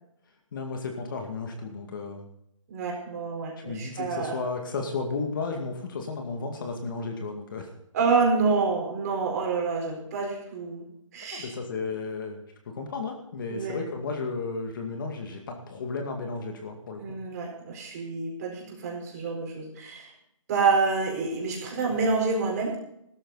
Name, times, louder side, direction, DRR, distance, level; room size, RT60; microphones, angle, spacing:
voice 1, 0.5-2.3 3.6-7.7 11.3-17.0, left 4 dB, 40° left, 3 dB, 2.2 m, -33 dB
voice 2, 2.7-4.4 7.9-10.8 11.1-11.5 13.5-13.8 17.0-20.1 20.5-22.8, right 4 dB, 30° right, 0 dB, 4.4 m, -27 dB
16.0 x 13.0 x 4.1 m, 0.75 s
hypercardioid pair, 165°, 17 cm